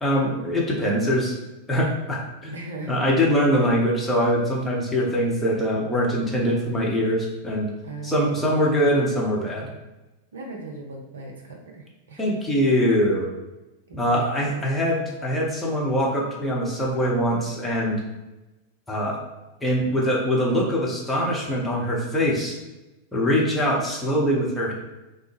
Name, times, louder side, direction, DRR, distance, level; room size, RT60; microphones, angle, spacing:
voice 1, 0.0-1.4 1.7-2.5 2.9-7.7 8.0-9.7 12.2-13.3 13.9-18.0 18.9-19.2 19.6-22.6 23.1-24.7, equal, 5° left, -4 dB, 0.8 m, -23 dB
voice 2, 2.5-3.0 7.8-8.8 10.3-12.4 13.9-14.6, right 3 dB, 65° right, 0 dB, 0.6 m, -38 dB
3.1 x 2.1 x 3.2 m, 1.0 s
figure-of-eight pair, 90°, 0 cm